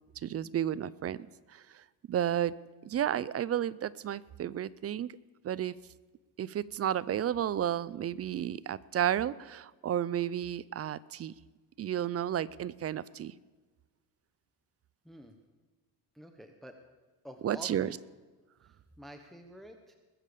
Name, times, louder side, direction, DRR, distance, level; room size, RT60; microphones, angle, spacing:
voice 1, 0.2-1.2 1.5-2.5 2.8-5.1 5.4-5.7 6.4-11.3 11.8-13.3 17.4-17.9, right 10 dB, 35° right, 19 dB, 0.4 m, -32 dB
voice 2, 16.1-16.8 17.2-17.9 18.6-19.9, equal, ahead, 4 dB, 1.0 m, -49 dB
20.5 x 7.5 x 6.7 m, 1.3 s
cardioid pair, 110°, 42 cm